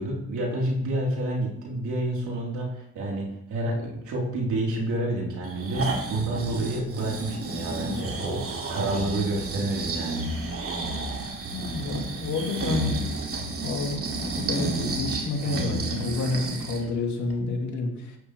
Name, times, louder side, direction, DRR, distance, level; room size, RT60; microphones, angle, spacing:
voice 1, 0.0-10.3, right 1 dB, 75° right, -3 dB, 3.5 m, -29 dB
Breathing, 5.4-16.9 17.3-17.4, right 2 dB, 50° right, 2.2 m, -31 dB
voice 2, 11.5-12.9 13.6-18.2, left 3 dB, 70° left, 1 dB, 2.2 m, -29 dB
11.5 x 9.1 x 3.2 m, 0.76 s
cardioid pair, 90°, 30 cm